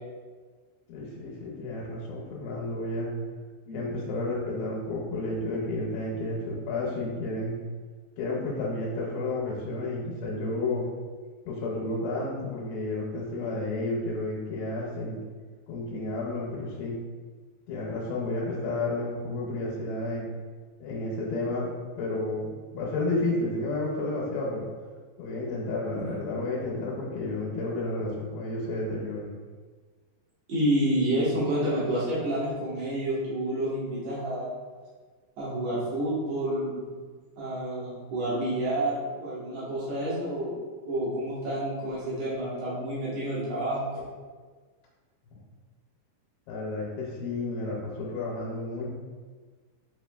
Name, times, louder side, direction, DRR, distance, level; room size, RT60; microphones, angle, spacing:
voice 1, 0.9-3.1 3.7-7.6 8.2-10.9 11.5-15.2 15.7-17.0 17.7-20.3 20.8-24.7 25.2-29.3 45.3-45.4 46.5-48.9, left 2 dB, 85° left, -5 dB, 3.1 m, -31 dB
voice 2, 30.5-34.5 35.4-36.9 37.4-40.5 40.8-44.0, right 1 dB, 90° right, -9 dB, 1.4 m, -29 dB
8.1 x 2.8 x 2.3 m, 1.5 s
omnidirectional pair, 5.2 m